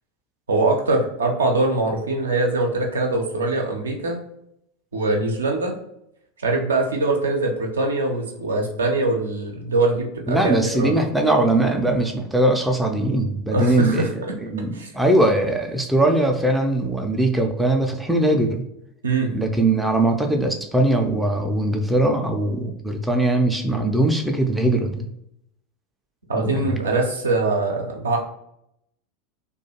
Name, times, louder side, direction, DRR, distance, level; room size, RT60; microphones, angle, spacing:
voice 1, 0.5-4.2 4.9-5.8 6.4-11.0 13.5-14.3 14.7-14.9 19.0-19.3 26.3-28.2, right 2 dB, 75° right, 1 dB, 0.4 m, -22 dB
voice 2, 10.3-18.6 19.3-25.1 26.5-26.8, right 1 dB, 5° right, 2 dB, 0.3 m, -21 dB
2.3 x 2.2 x 2.8 m, 0.77 s
figure-of-eight pair, 80°, 0 cm